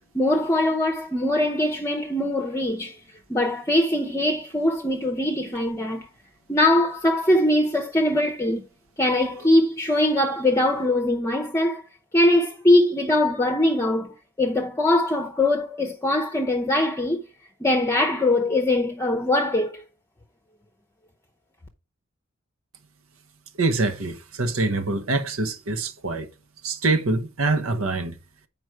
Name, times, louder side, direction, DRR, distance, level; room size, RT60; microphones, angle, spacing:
voice 1, 0.1-3.0 3.3-6.1 6.5-8.6 9.0-11.8 12.1-17.2 17.6-19.8, left 1 dB, 15° left, 0.7 m, -22 dB
voice 2, 23.6-26.3 26.6-28.2, right 3 dB, 85° right, 1.1 m, -25 dB
7.9 x 5.1 x 4.7 m
head